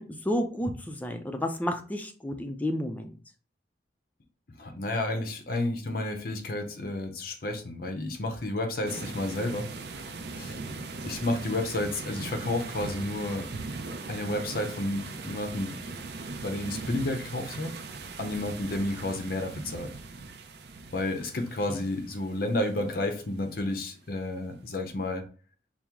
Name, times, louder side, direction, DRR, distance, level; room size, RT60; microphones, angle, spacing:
voice 1, 0.0-3.2, left 1 dB, 10° left, 6 dB, 0.4 m, -31 dB
voice 2, 4.6-9.7 10.4-10.5 11.0-13.5 14.1-15.8 16.4-17.7 18.2-19.9 20.9-25.2, left 1 dB, 55° left, 5 dB, 0.6 m, -31 dB
sound 1, 8.9-23.4, right 3 dB, 65° right, 0.5 m, -40 dB
4.4 x 2.0 x 3.5 m, 0.39 s
head